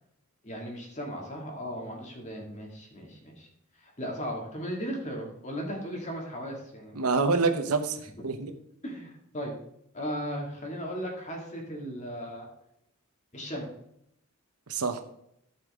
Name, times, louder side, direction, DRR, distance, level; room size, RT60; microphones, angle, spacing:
voice 1, 0.4-3.5 3.8-7.2 8.2-8.3 8.8-9.5 9.9-12.5 13.3-13.7, equal, 30° left, 0 dB, 2.3 m, -37 dB
voice 2, 6.9-8.5 14.7-15.0, right 4 dB, 90° right, 8 dB, 1.0 m, -27 dB
14.0 x 5.6 x 3.7 m, 0.76 s
head